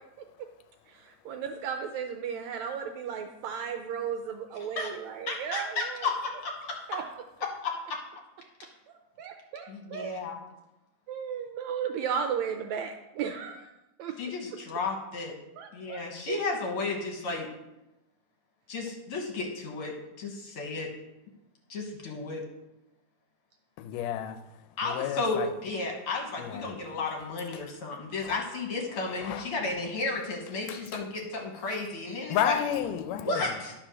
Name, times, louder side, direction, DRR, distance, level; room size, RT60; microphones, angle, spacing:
voice 1, 0.9-6.1 6.9-7.0 8.9-10.2 11.1-13.7 14.0-14.2 15.6-16.0 16.3-16.4, right 7 dB, 80° right, 1.6 m, -35 dB
voice 2, 5.3-6.8 7.6-8.0 9.7-10.4 14.2-15.3 15.7-17.5 18.7-19.9 20.2-20.9 21.7-22.4 24.8-32.6 33.1-33.7, left 3 dB, 55° left, 1.7 m, -33 dB
voice 3, 23.8-24.4 24.8-25.5 26.4-26.7 27.5-27.7 28.2-28.3 29.1-29.5 30.7-31.0 32.3-33.5, left 10 dB, 85° left, 2.2 m, -32 dB
11.0 x 4.2 x 6.2 m
omnidirectional pair, 3.7 m